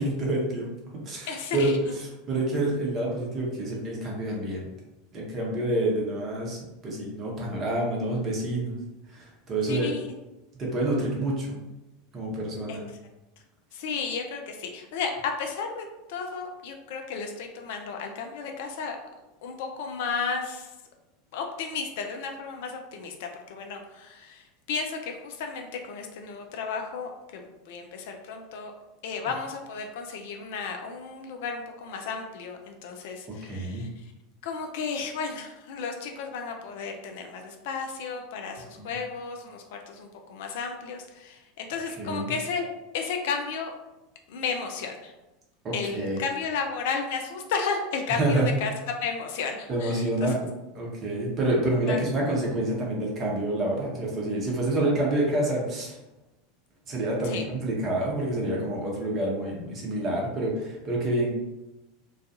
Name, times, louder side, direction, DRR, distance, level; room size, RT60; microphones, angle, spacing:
voice 1, 0.0-4.7 5.1-8.8 9.1-9.9 10.6-11.6 12.1-12.8 33.5-33.8 38.7-38.9 42.0-42.3 45.6-46.2 48.2-48.5 49.7-50.4 50.7-56.0 56.9-61.3, right 1 dB, 35° right, -3 dB, 0.8 m, -28 dB
voice 2, 1.3-1.7 9.7-10.1 12.7-12.8 13.7-15.1 15.4-19.0 19.4-20.7 21.3-28.7 29.0-33.9 34.4-42.7 42.9-43.7 44.3-45.1 45.7-48.7 49.0-50.3 51.9-52.0 57.3-57.4, left 5 dB, 60° left, 3 dB, 0.3 m, -33 dB
2.3 x 2.2 x 2.7 m, 1.0 s
figure-of-eight pair, 80°, 0 cm